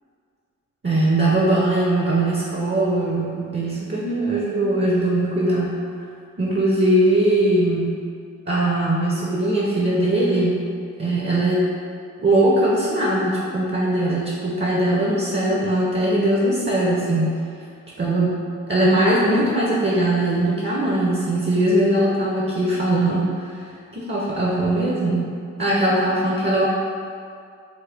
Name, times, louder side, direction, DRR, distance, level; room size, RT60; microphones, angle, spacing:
voice 1, 0.8-5.7 6.4-8.1 8.5-10.6 11.0-11.7 12.2-17.4 18.0-23.5 23.9-25.3 25.6-26.7, right 1 dB, 35° right, -4 dB, 0.6 m, -20 dB
3.6 x 2.1 x 3.4 m, 2.3 s
cardioid pair, 40°, 32 cm